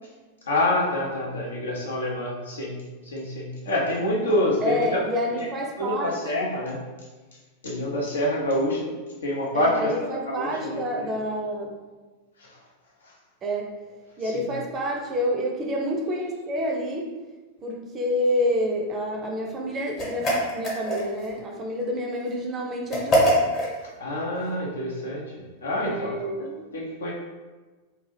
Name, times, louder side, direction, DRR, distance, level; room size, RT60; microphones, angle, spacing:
voice 1, 0.5-2.8 3.1-5.0 5.4-5.5 5.8-6.8 7.6-8.9 9.2-11.1 12.4-12.5 14.2-14.5 24.0-25.3 25.6-27.1, left 1 dB, 70° left, -3 dB, 0.7 m, -27 dB
voice 2, 4.6-6.2 9.5-11.7 13.4-13.7 14.2-17.1 17.6-23.4 25.8-26.5, equal, 25° right, 1 dB, 0.5 m, -28 dB
sound 1, 20.0-21.3 22.9-23.7, equal, 35° left, 1.1 m, -23 dB
2.8 x 2.3 x 3.2 m, 1.3 s
figure-of-eight pair, 90°, 0 cm